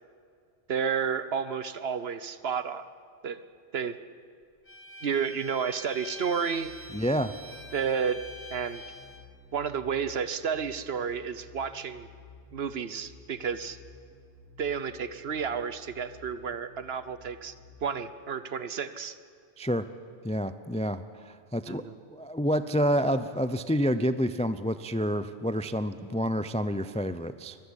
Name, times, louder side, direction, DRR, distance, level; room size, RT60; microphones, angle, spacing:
voice 1, 0.7-2.9 3.2-3.4 3.7-4.0 5.0-6.7 7.7-8.2 8.5-8.8 9.5-12.1 12.5-13.8 14.6-17.5 17.8-19.2 21.7-22.0, right 6 dB, 55° right, 13 dB, 1.1 m, -31 dB
Bowed string instrument, 4.7-9.3, left 2 dB, 30° left, 1.9 m, -45 dB
sound 1, 6.5-18.0, left 4 dB, 75° left, 5.4 m, -54 dB
voice 2, 6.9-7.3 19.6-19.9 20.2-21.9 22.1-27.6, equal, 10° left, 12 dB, 0.3 m, -28 dB
24.0 x 15.0 x 10.0 m, 2.2 s
omnidirectional pair, 1.3 m